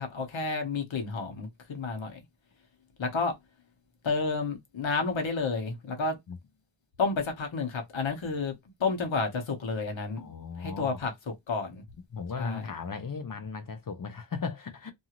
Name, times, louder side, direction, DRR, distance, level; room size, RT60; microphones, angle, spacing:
voice 1, 0.0-2.2 3.0-3.3 4.0-6.2 7.0-8.5 8.8-10.3 10.6-11.1 11.5-11.8 12.4-12.7, left 4 dB, 85° left, 1.0 m, -30 dB
voice 2, 10.2-11.0 12.1-14.9, left 5 dB, 50° left, 0.6 m, -36 dB
2.6 x 2.4 x 2.9 m
wide cardioid pair, 85°, 45 cm